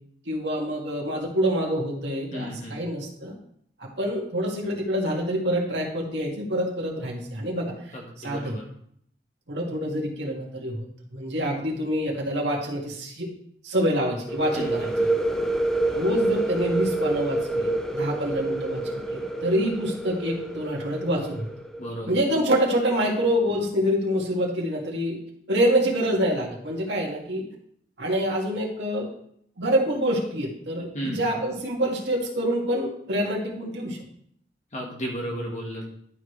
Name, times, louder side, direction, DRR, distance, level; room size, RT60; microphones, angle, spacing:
voice 1, 0.3-3.4 3.8-7.7 8.2-8.5 9.5-10.9 11.1-13.3 13.6-14.9 15.8-21.5 22.1-25.2 25.5-27.4 28.0-29.1 29.6-34.0, equal, 75° right, -2 dB, 2.1 m, -26 dB
voice 2, 2.3-2.8 7.9-8.6 14.5-15.2 21.8-22.1 30.9-31.4 34.7-35.9, equal, 40° left, -1 dB, 1.5 m, -34 dB
sound 1, 14.3-21.9, right 2 dB, 5° left, 0.5 m, -27 dB
12.0 x 4.9 x 3.2 m, 0.67 s
head